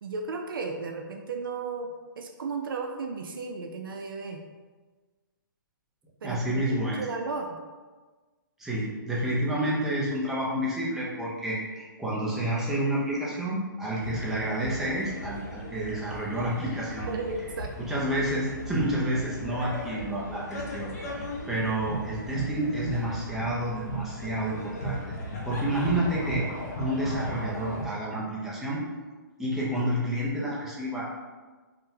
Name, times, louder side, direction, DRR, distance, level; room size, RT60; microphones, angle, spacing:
voice 1, 0.0-4.4 6.2-7.6 17.1-18.0, right 4 dB, 80° right, 3 dB, 0.4 m, -35 dB
voice 2, 6.2-7.0 8.6-17.1 17.8-26.5 26.8-28.8 29.4-31.2, right 1 dB, 5° right, -7 dB, 0.4 m, -29 dB
sound 1, 14.0-27.9, equal, 50° left, 0.7 m, -36 dB
3.7 x 2.1 x 2.7 m, 1.3 s
hypercardioid pair, 160°, 11 cm